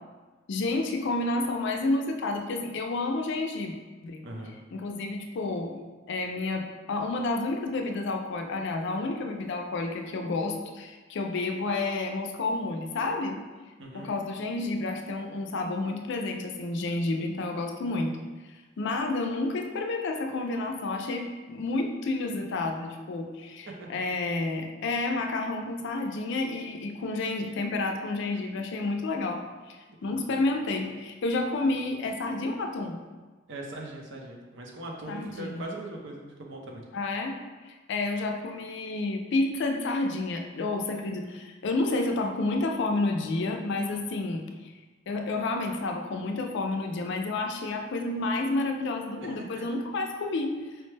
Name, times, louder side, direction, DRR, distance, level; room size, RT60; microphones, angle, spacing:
voice 1, 0.5-3.7 4.0-4.2 4.7-5.8 6.1-13.4 13.9-18.1 18.8-29.8 30.0-33.0 35.1-35.7 36.9-44.7 45.1-50.5, left 2 dB, 65° left, 4 dB, 0.4 m, -30 dB
voice 2, 4.2-4.6 13.8-14.1 23.8-23.9 29.9-30.0 33.5-36.8 49.2-49.6, right 2 dB, 65° right, 0 dB, 0.6 m, -40 dB
4.5 x 2.1 x 3.2 m, 1.3 s
head